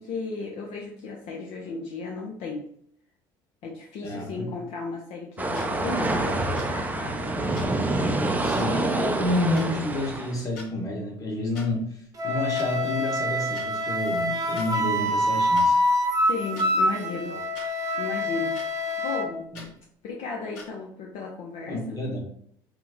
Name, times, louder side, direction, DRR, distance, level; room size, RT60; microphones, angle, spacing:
voice 1, 0.0-2.7 3.6-7.5 16.3-17.4 17.7-18.6 19.0-19.5 20.0-22.0, left 4 dB, 65° left, -1 dB, 0.5 m, -35 dB
voice 2, 4.0-4.5 8.4-11.9 12.2-15.8 17.3-17.4 19.5-19.6 21.7-22.2, left 1 dB, 35° left, 0 dB, 1.2 m, -29 dB
sound 1, 5.4-10.4, right 2 dB, 15° right, 0.4 m, -27 dB
sound 2, 5.5-5.7 6.6-6.7 7.5-7.7 8.6-8.7 9.5-9.7 10.4-10.7 11.5-11.7 12.6-12.7 13.5-13.7 14.6-14.7 15.5-15.7 16.5-16.7 17.5-17.7 18.5-18.7 19.5-19.7 20.5-20.7, left 3 dB, 90° left, 1.1 m, -42 dB
Wind instrument woodwind instrument, 12.2-19.3, left 1 dB, 35° right, 0.8 m, -25 dB
2.9 x 2.0 x 3.5 m, 0.67 s
supercardioid pair, 80°, 10 cm